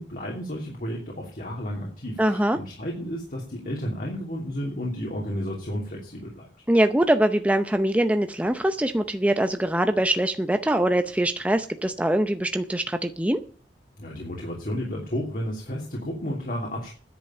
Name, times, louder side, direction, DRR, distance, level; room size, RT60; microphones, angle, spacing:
voice 1, 0.0-6.5 14.0-17.0, equal, 50° left, -2 dB, 2.9 m, -32 dB
voice 2, 2.2-2.6 6.7-13.4, right 1 dB, 10° right, 7 dB, 0.7 m, -23 dB
10.5 x 8.4 x 8.9 m, 0.43 s
head